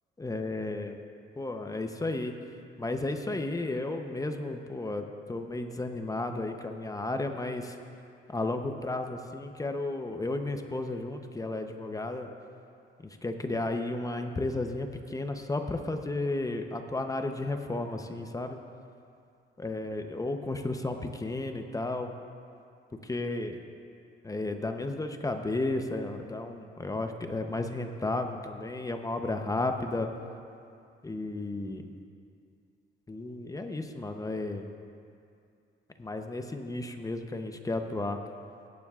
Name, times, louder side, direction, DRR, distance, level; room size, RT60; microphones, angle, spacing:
voice 1, 0.2-1.0 1.4-2.3 2.8-7.7 8.3-12.3 13.2-18.6 19.6-22.1 23.1-23.6 24.2-30.1 31.0-31.8 33.1-34.6 36.0-38.2, left 2 dB, 15° left, 5 dB, 0.7 m, -33 dB
17.5 x 9.9 x 2.4 m, 2.4 s
cardioid pair, 90°, 20 cm